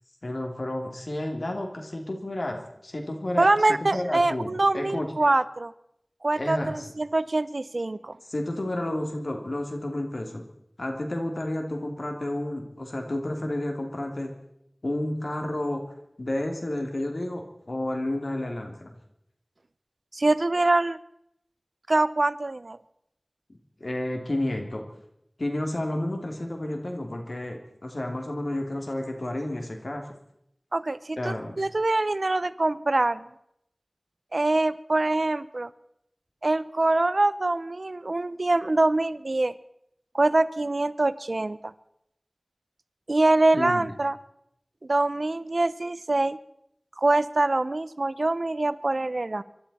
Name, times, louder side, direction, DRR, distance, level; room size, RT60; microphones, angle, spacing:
voice 1, 0.2-5.1 6.4-6.9 8.3-10.5 10.8-14.4 14.8-15.9 16.2-18.9 23.8-24.9 25.4-30.1 31.2-31.6 43.5-43.9, left 1 dB, 75° left, 2 dB, 2.8 m, -31 dB
voice 2, 3.4-5.7 6.2-8.2 20.1-21.0 21.9-22.8 30.7-33.2 34.3-35.7 36.4-39.5 40.1-41.7 43.1-44.2 44.8-46.4 47.0-49.4, right 2 dB, 75° right, 16 dB, 0.6 m, -24 dB
25.5 x 13.0 x 4.3 m, 0.76 s
wide cardioid pair, 45°, 0 cm